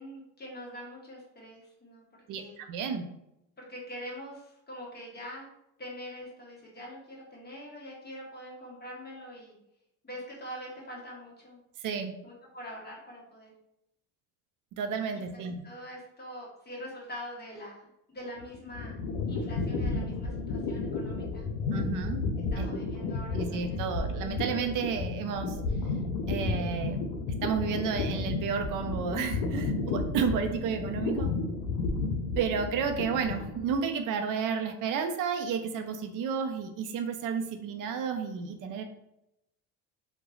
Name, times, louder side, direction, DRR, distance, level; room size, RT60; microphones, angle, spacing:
voice 1, 0.0-2.1 2.3-2.6 3.6-5.5 5.8-9.6 10.0-11.6 12.2-13.5 15.3-19.0 19.3-21.5 22.5-23.9 30.5-30.9, equal, 25° left, -4 dB, 1.0 m, -44 dB
voice 2, 2.3-3.1 11.8-12.1 14.7-15.5 21.7-22.2 22.6-22.8 23.3-25.6 26.3-27.0 27.3-31.3 32.4-38.8, right 6 dB, 50° right, 6 dB, 0.5 m, -31 dB
sound 1, 18.4-33.8, left 3 dB, 90° left, 0.6 m, -32 dB
3.1 x 2.2 x 2.3 m, 0.84 s
supercardioid pair, 90°, 41 cm